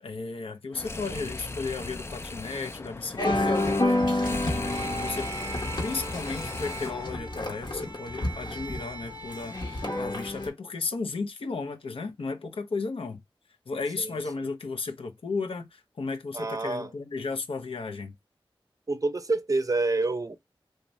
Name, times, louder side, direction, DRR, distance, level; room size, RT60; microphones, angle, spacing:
voice 1, 0.0-5.3 5.8-13.2 13.7-18.2, left 4 dB, 90° left, 0.5 m, -34 dB
sound 1, 0.7-7.2, left 2 dB, 30° left, 0.3 m, -38 dB
sound 2, 3.2-10.5, left 1 dB, 55° left, 0.8 m, -29 dB
voice 2, 14.0-14.5 16.3-16.9 18.9-20.4, right 3 dB, 40° right, 0.5 m, -28 dB
2.6 x 2.1 x 3.0 m
wide cardioid pair, 45°, 9 cm